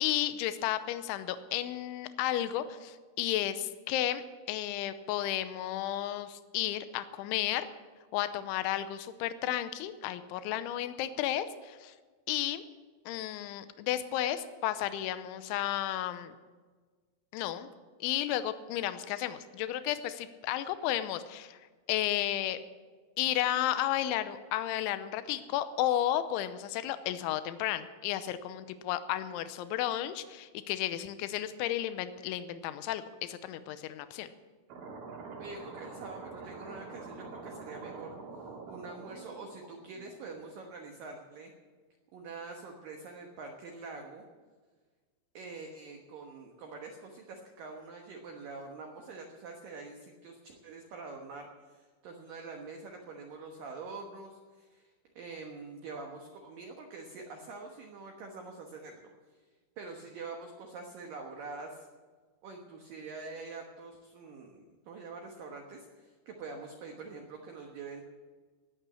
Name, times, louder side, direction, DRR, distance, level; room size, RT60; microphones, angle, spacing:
voice 1, 0.0-4.2 4.5-7.7 8.1-11.9 12.3-12.6 13.1-16.4 17.3-17.7 18.0-21.6 21.9-22.6 23.2-34.3, left 12 dB, 80° left, 12 dB, 2.9 m, -33 dB
sound 1, 34.7-40.5, right 4 dB, 50° right, 4.1 m, -45 dB
voice 2, 35.4-38.1 38.7-41.5 42.1-44.3 45.3-59.0 59.8-61.9 62.4-68.0, right 3 dB, 75° right, 2 dB, 2.0 m, -45 dB
19.5 x 8.8 x 7.1 m, 1.4 s
omnidirectional pair, 5.9 m